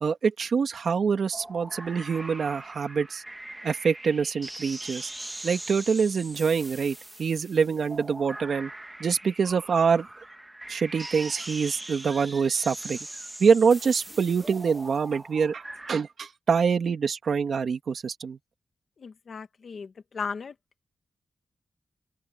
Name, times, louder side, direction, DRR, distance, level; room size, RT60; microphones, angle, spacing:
voice 1, 0.0-3.2 3.6-5.1 5.4-8.7 9.0-10.1 10.7-13.0 13.4-18.4, right 6 dB, 65° right, 2.4 m, -25 dB
sound 1, 1.3-16.0, right 1 dB, 10° right, 1.5 m, -41 dB
voice 2, 19.0-20.5, left 5 dB, 55° left, 1.5 m, -36 dB
open air
wide cardioid pair, 160°, 0 cm